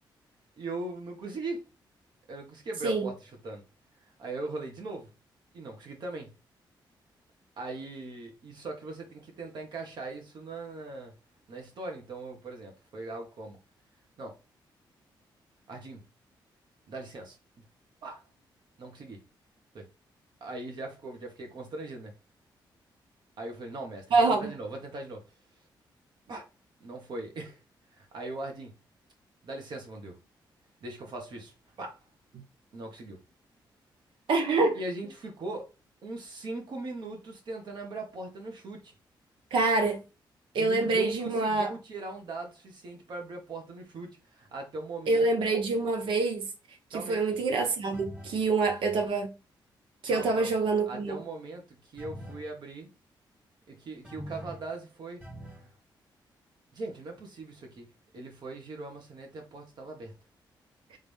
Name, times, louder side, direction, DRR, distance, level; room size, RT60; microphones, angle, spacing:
voice 1, 0.6-1.7 2.3-3.6 4.2-5.1 5.5-6.3 7.6-11.1 11.5-13.6 14.2-14.4 15.7-16.0 16.9-17.4 18.0-18.2 18.8-19.2 19.7-19.9 20.4-22.1 23.4-25.2 26.3-26.4 26.8-27.6 27.9-28.8 29.4-30.2 30.8-32.0 32.7-33.2 34.7-35.7 36.0-38.9 40.5-45.3 46.9-47.2 50.1-50.5 50.9-52.9 53.7-55.2 56.7-57.8 58.1-60.1, right 2 dB, 60° right, 1.4 m, -40 dB
voice 2, 24.1-24.5 34.3-34.8 39.5-40.0 40.5-41.7 45.1-46.5 46.9-49.4 50.0-51.2, right 3 dB, 80° right, 1.1 m, -26 dB
sound 1, 47.9-48.5 52.0-52.5 54.0-54.7 55.2-55.7, equal, 15° right, 1.4 m, -43 dB
3.7 x 3.5 x 3.5 m
cardioid pair, 135°, 8 cm